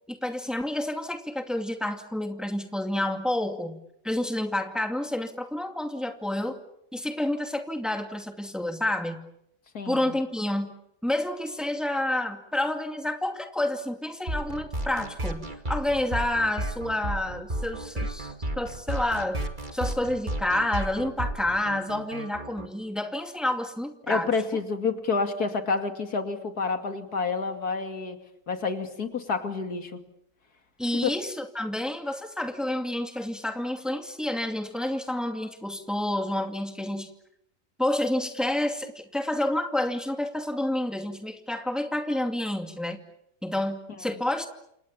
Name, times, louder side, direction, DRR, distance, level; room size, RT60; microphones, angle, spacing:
voice 1, 0.1-6.6 6.9-9.2 9.9-10.7 11.0-19.4 19.7-24.3 30.8-37.1 37.8-43.0 43.4-44.5, left 1 dB, ahead, 6 dB, 2.3 m, -29 dB
voice 2, 9.7-10.2 24.0-28.2 28.5-30.0 31.0-31.1, left 4 dB, 85° left, 7 dB, 2.9 m, -29 dB
sound 1, 14.3-22.7, right 1 dB, 30° right, 2.4 m, -33 dB
29.0 x 27.0 x 7.3 m, 0.78 s
omnidirectional pair, 1.6 m